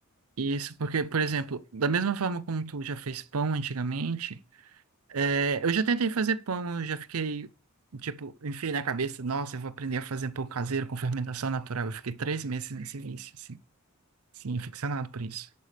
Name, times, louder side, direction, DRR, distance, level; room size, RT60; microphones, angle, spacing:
voice 1, 0.4-4.4 5.1-7.5 7.9-13.6 14.4-15.5, right 4 dB, 80° right, 0.7 m, -30 dB
10.5 x 9.0 x 3.4 m
head